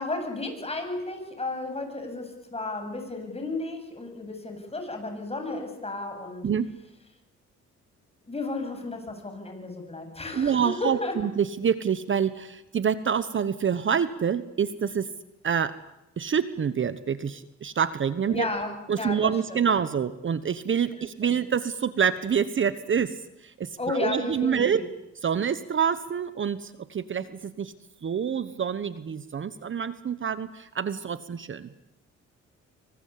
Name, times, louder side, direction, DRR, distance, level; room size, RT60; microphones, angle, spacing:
voice 1, 0.0-6.4 8.3-11.1 18.3-19.6 20.9-21.0 23.8-24.8, left 2 dB, 20° left, 5 dB, 7.9 m, -33 dB
voice 2, 10.3-15.1 15.4-15.8 16.2-18.5 18.9-24.8 25.2-27.7 28.0-31.7, right 7 dB, 40° right, 13 dB, 1.1 m, -27 dB
25.5 x 24.5 x 8.6 m, 0.89 s
cardioid pair, 90°, 30 cm